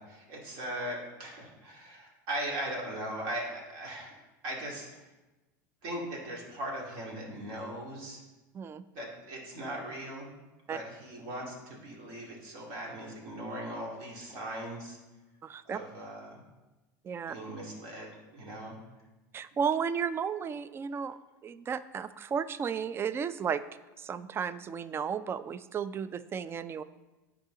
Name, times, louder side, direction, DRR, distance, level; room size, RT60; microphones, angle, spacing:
voice 1, 0.0-4.1 4.4-5.0 5.8-8.2 8.9-10.3 10.7-15.0 15.7-16.4 17.3-18.8, right 1 dB, 60° right, -3 dB, 2.3 m, -39 dB
voice 2, 15.4-15.8 17.0-17.4 19.3-23.6 24.0-26.8, right 7 dB, 25° right, 15 dB, 0.4 m, -33 dB
8.6 x 4.9 x 3.8 m, 1.1 s
hypercardioid pair, 100°, 10 cm